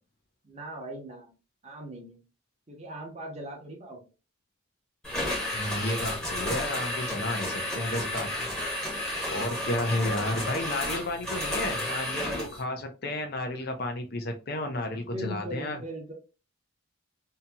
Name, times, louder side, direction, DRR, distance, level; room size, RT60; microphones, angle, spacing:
voice 1, 0.4-1.3 1.6-2.2 2.7-4.0 7.4-7.8 14.9-16.1, equal, 30° right, -1 dB, 0.8 m, -40 dB
sound 1, 5.0-12.6, left 1 dB, 5° left, 1.0 m, -32 dB
voice 2, 5.5-8.5 9.3-15.8, left 1 dB, 50° left, 5 dB, 0.5 m, -32 dB
2.8 x 2.7 x 2.2 m, 0.32 s
head